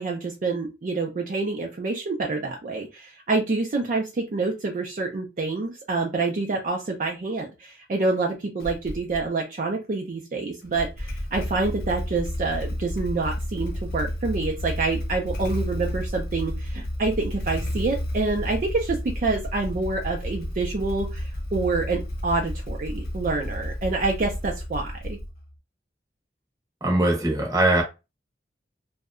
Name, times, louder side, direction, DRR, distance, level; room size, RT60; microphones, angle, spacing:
voice 1, 0.0-25.2, right 3 dB, 45° right, 0.4 m, -27 dB
Motorcycle / Engine starting, 8.6-9.3 10.6-25.5, left 1 dB, 55° left, 0.7 m, -31 dB
voice 2, 26.8-27.8, right 1 dB, 20° right, 0.7 m, -21 dB
2.7 x 2.1 x 2.4 m
head